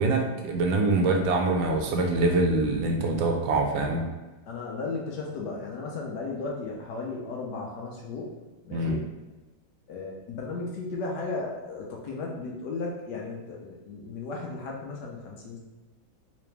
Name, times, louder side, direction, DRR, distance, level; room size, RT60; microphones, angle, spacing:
voice 1, 0.0-4.0 8.7-9.0, right 2 dB, 80° right, 2 dB, 1.3 m, -24 dB
voice 2, 4.5-8.3 8.6-9.1 9.9-15.6, left 3 dB, 70° left, -1 dB, 1.1 m, -35 dB
3.8 x 2.9 x 3.3 m, 1.2 s
omnidirectional pair, 2.1 m